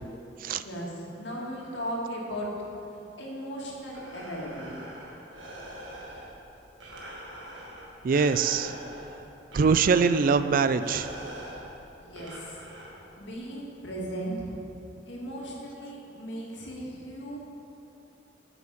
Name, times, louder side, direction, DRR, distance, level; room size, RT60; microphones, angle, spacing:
voice 1, 0.6-2.5 2.9-4.7 12.0-12.6 13.2-14.5 15.1-17.4, equal, 70° left, -3 dB, 2.1 m, -37 dB
Breathing, 3.7-13.3, right 1 dB, 90° right, 1.7 m, -44 dB
voice 2, 8.0-8.8 9.5-11.1, right 5 dB, 50° right, 12 dB, 0.3 m, -23 dB
8.9 x 7.0 x 7.1 m, 2.9 s
head